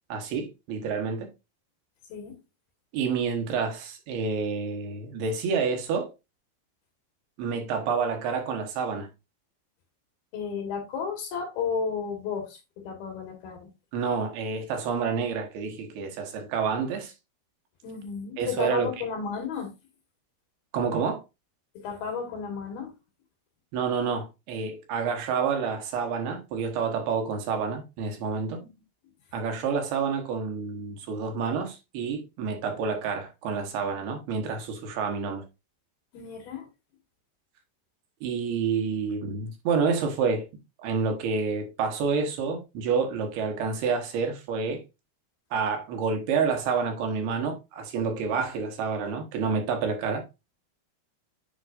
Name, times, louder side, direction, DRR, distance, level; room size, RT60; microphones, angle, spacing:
voice 1, 0.1-1.3 2.9-6.1 7.4-9.1 13.9-17.1 18.4-18.9 20.7-21.2 23.7-28.6 29.3-35.4 38.2-40.5 40.8-44.8 45.5-50.2, right 5 dB, 75° right, 3.1 m, -28 dB
voice 2, 10.3-13.7 17.8-19.7 21.8-22.9 28.6-28.7 36.1-36.7, left 6 dB, 70° left, 3.7 m, -33 dB
9.8 x 4.0 x 2.6 m
omnidirectional pair, 4.7 m